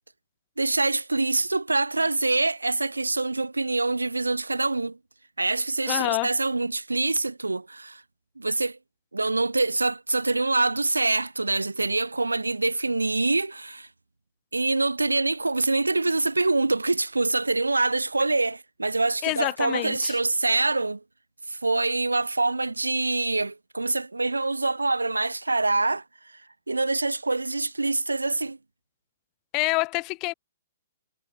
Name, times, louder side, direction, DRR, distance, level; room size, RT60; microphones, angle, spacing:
voice 1, 0.6-5.0 5.4-8.0 8.4-8.8 9.1-13.9 14.5-21.0 21.5-26.0 26.7-28.6, right 3 dB, 90° right, 3.5 m, -25 dB
voice 2, 5.9-6.3 19.2-20.2 29.5-30.3, left 26 dB, 35° left, 1.5 m, -27 dB
figure-of-eight pair, 120°, 0 cm